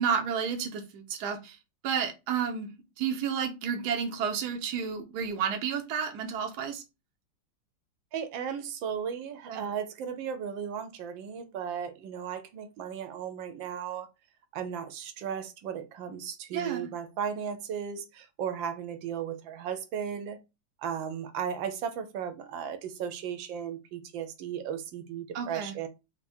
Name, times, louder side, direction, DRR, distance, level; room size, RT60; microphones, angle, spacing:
voice 1, 0.0-1.6 1.8-2.7 3.0-6.8 9.5-9.6 16.5-16.9 25.3-25.7, right 7 dB, 65° right, 1.2 m, -31 dB
voice 2, 8.1-14.1 14.5-20.4 20.8-25.9, right 8 dB, 85° right, 1.4 m, -35 dB
4.6 x 2.2 x 4.2 m
omnidirectional pair, 2.0 m